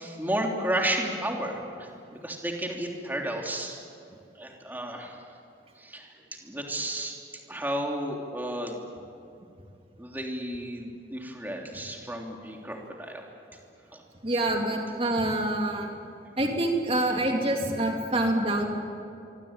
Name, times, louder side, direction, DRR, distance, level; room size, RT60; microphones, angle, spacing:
voice 1, 0.0-3.8 4.3-5.2 5.8-8.8 10.0-13.3 13.9-14.0, right 1 dB, 10° right, 0 dB, 3.2 m, -33 dB
voice 2, 14.2-15.9 16.4-18.7, right 1 dB, 30° right, 2 dB, 3.2 m, -26 dB
25.5 x 23.5 x 9.0 m, 2.5 s
head